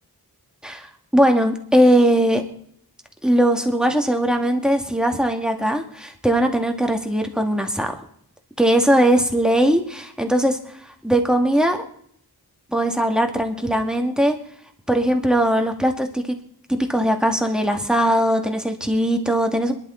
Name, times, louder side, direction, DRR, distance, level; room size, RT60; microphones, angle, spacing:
voice 1, 0.6-2.5 3.2-8.0 8.6-10.6 11.0-11.8 12.7-14.4 14.9-16.3 16.7-19.7, right 1 dB, ahead, 3 dB, 2.2 m, -19 dB
27.0 x 11.0 x 4.0 m, 0.67 s
wide cardioid pair, 45°, 39 cm